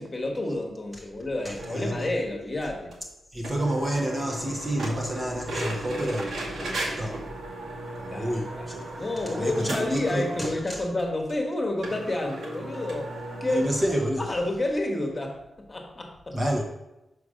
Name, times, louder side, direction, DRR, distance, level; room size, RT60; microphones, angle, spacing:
voice 1, 0.0-2.9 8.1-8.3 8.6-13.1 13.4-13.7 14.2-15.4 15.7-16.4, left 1 dB, 20° left, 2 dB, 1.2 m, -29 dB
voice 2, 1.4-1.9 3.3-7.3 8.0-8.8 9.3-10.8 13.5-14.3 16.3-16.6, equal, 15° right, 1 dB, 0.7 m, -29 dB
sound 1, 1.6-2.2 2.6-2.7 2.9-3.0 3.4-10.6 11.0-11.1 11.3-11.4 11.8-13.9, right 1 dB, 85° right, 2.3 m, -35 dB
6.0 x 4.8 x 6.3 m, 0.96 s
wide cardioid pair, 175°, 0 cm